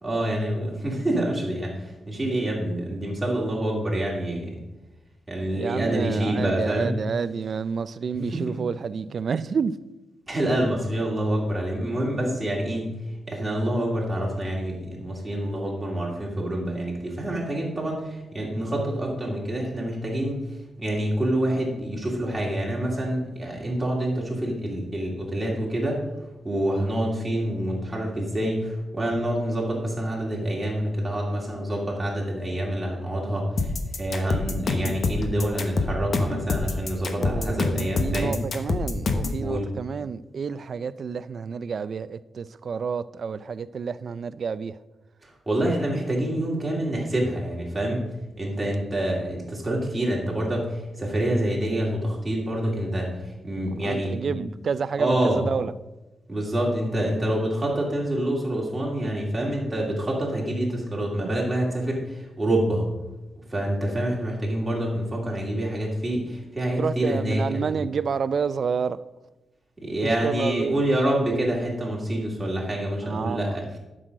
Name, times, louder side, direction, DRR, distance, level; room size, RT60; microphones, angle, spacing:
voice 1, 0.0-4.6 5.3-6.9 8.1-8.5 10.3-13.0 13.3-20.4 20.8-26.0 26.4-38.4 39.4-39.7 45.2-48.0 48.4-54.4 55.0-55.4 56.3-62.9 63.4-67.7 69.8-73.8, right 1 dB, 15° right, 2.7 m, -27 dB
voice 2, 5.5-9.8 37.2-37.7 38.0-44.8 53.8-55.7 61.2-61.3 66.8-69.0 70.0-70.8 73.0-73.4, right 6 dB, 50° right, 0.4 m, -29 dB
sound 1, 33.6-39.4, left 3 dB, 45° left, 1.0 m, -26 dB
11.5 x 6.3 x 5.3 m
wide cardioid pair, 150°, 0 cm